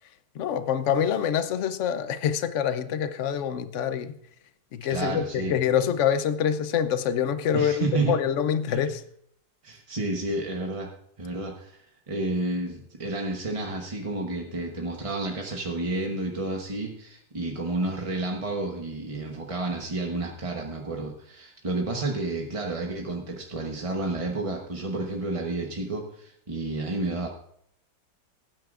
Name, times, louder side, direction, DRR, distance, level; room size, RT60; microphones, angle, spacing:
voice 1, 0.4-4.2 4.7-9.0, left 8 dB, 60° left, 0.8 m, -26 dB
voice 2, 4.9-5.5 7.5-8.2 8.7-8.9 9.6-10.9 11.2-27.3, right 2 dB, 25° right, 0.8 m, -30 dB
19.0 x 9.4 x 2.5 m
omnidirectional pair, 1.9 m